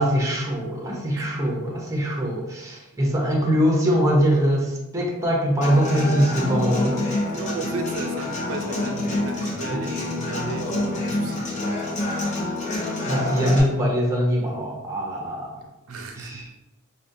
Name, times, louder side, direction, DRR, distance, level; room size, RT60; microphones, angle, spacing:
voice 1, 0.0-7.0 9.7-9.9 13.1-15.6 16.2-16.5, equal, 15° right, -1 dB, 0.6 m, -22 dB
Human voice / Acoustic guitar, 5.6-13.6, left 2 dB, 35° left, 0.9 m, -27 dB
voice 2, 7.3-11.4 15.9-16.4, right 3 dB, 80° right, 4 dB, 0.5 m, -34 dB
4.9 x 2.2 x 2.6 m, 0.94 s
head